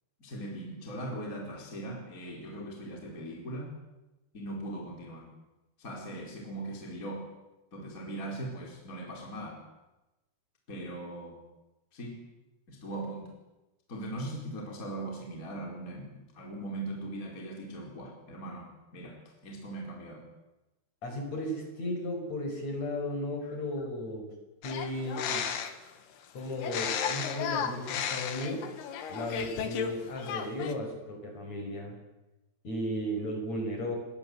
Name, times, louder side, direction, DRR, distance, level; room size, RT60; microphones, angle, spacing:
voice 1, 0.2-3.7 4.3-5.3 5.8-7.3 7.7-9.6 10.7-11.4 11.9-12.2 12.7-13.3 13.9-20.3 23.4-23.5, right 1 dB, 20° left, 0 dB, 4.6 m, -40 dB
voice 2, 21.0-24.3 24.6-25.5 26.3-28.6 29.1-32.0 32.6-34.0, left 1 dB, 40° left, 3 dB, 6.6 m, -35 dB
sound 1, 24.6-25.9 26.6-29.9 30.2-30.7, left 8 dB, 75° left, 3.8 m, -34 dB
29.5 x 22.0 x 8.1 m, 1.0 s
omnidirectional pair, 4.8 m